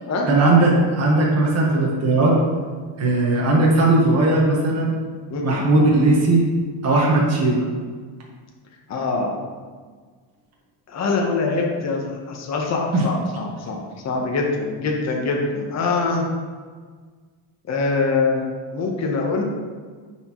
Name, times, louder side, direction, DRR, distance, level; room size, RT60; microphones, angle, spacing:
voice 1, 0.3-2.3 3.0-4.9 5.4-6.4 6.8-7.7 12.9-13.0, right 2 dB, 35° right, -3 dB, 1.3 m, -17 dB
voice 2, 5.3-5.6 8.9-9.4 10.9-16.3 17.7-18.4 18.7-19.4, left 3 dB, 35° left, 0 dB, 0.9 m, -24 dB
9.3 x 4.5 x 3.0 m, 1.5 s
cardioid pair, 160°, 47 cm